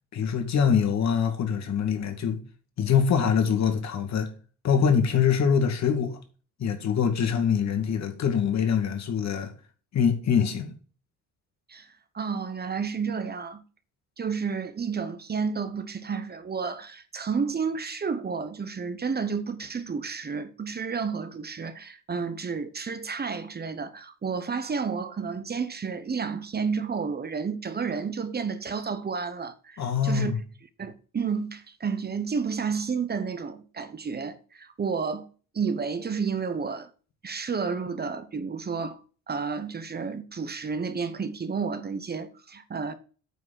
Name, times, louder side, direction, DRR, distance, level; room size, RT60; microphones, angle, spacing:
voice 1, 0.1-2.4 2.8-4.3 4.6-6.2 6.6-9.5 9.9-10.7 29.8-30.4, left 7 dB, 65° left, 2.3 m, -24 dB
voice 2, 12.1-13.6 14.2-30.3 30.8-35.3 35.5-36.9 37.2-39.0 39.3-42.9, right 5 dB, 30° right, 1.0 m, -31 dB
9.3 x 4.3 x 7.5 m
cardioid pair, 90°, 30 cm